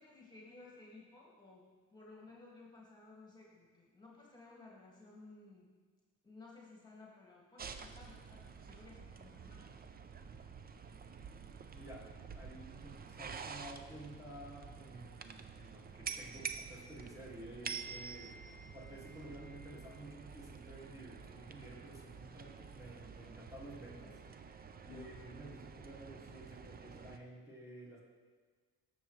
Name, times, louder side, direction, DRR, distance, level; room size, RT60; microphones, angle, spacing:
voice 1, 0.0-5.7 6.2-9.7 24.8-25.2, left 3 dB, 15° left, -4 dB, 2.0 m, -57 dB
sound 1, 7.6-27.2, right 6 dB, 30° right, 0.5 m, -49 dB
voice 2, 11.7-18.4 18.7-24.2 24.9-28.0, right 1 dB, 10° right, -5 dB, 2.1 m, -52 dB
14.0 x 6.2 x 3.2 m, 1.5 s
cardioid pair, 90°, 30 cm